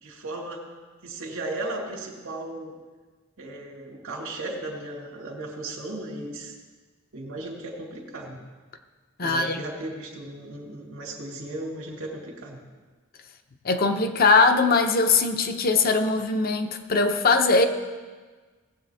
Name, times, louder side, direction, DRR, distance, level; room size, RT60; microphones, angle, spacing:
voice 1, 0.0-0.7 1.0-2.7 3.4-6.5 7.1-8.4 9.2-12.6, right 2 dB, 80° right, -3 dB, 2.1 m, -36 dB
voice 2, 9.2-9.6 13.6-17.7, left 3 dB, 45° left, 7 dB, 0.7 m, -21 dB
18.0 x 7.8 x 3.5 m, 1.4 s
head